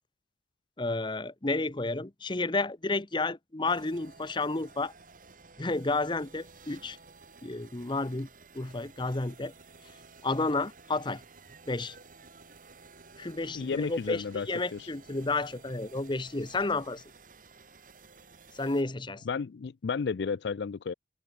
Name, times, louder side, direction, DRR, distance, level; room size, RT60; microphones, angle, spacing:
voice 1, 0.8-4.9 5.6-7.0 7.4-8.3 8.5-9.5 10.2-11.2 11.7-11.9 13.2-17.0 18.5-19.2, left 3 dB, 25° left, 0.9 m, -31 dB
sound 1, 3.7-18.8, right 4 dB, 45° right, 4.4 m, -54 dB
voice 2, 13.5-14.9 19.3-20.9, left 5 dB, 65° left, 0.4 m, -32 dB
head